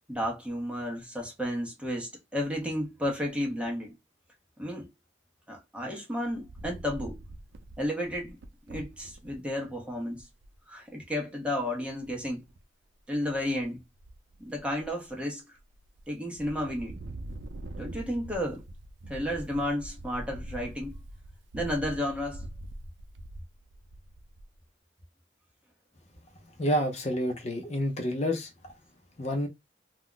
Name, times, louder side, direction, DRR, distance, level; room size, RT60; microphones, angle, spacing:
voice 1, 0.1-3.9 4.6-4.9 5.5-7.2 7.8-8.4 8.7-10.3 10.7-12.4 13.1-13.8 14.4-15.6 16.1-17.0 17.8-18.6 19.1-20.9 21.5-22.5, left 1 dB, 5° right, 0.7 m, -32 dB
Wind, 6.2-9.4 9.9-10.0 10.2-10.6 12.0-12.6 13.1-13.6 13.9-15.1 15.6-16.0 16.3-24.6, right 1 dB, 80° right, 0.5 m, -44 dB
voice 2, 26.4-28.7 29.2-29.5, equal, 35° left, 0.5 m, -29 dB
2.3 x 2.1 x 3.7 m
head